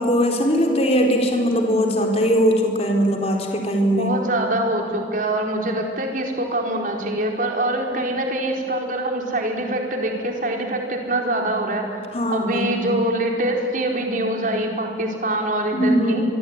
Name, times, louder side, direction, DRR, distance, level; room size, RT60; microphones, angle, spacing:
voice 1, 0.0-4.1 12.1-12.7 15.7-16.2, equal, 35° left, 1 dB, 4.1 m, -20 dB
voice 2, 3.8-11.9 12.3-16.2, right 1 dB, 50° right, 1 dB, 4.4 m, -24 dB
24.5 x 24.5 x 9.8 m, 2.2 s
head